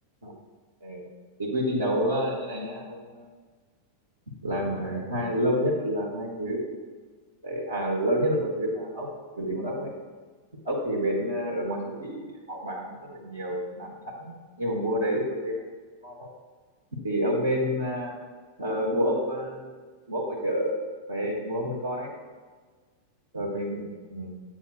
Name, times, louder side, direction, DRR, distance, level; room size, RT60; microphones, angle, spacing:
voice 1, 1.4-3.3 4.4-6.7 7.4-9.1 9.3-9.9 10.6-15.6 16.0-16.3 17.0-18.1 18.6-19.7 20.1-20.7 21.1-22.1 23.3-24.4, equal, 75° right, -3 dB, 1.1 m, -29 dB
8.2 x 7.2 x 2.3 m, 1.4 s
figure-of-eight pair, 90°, 0 cm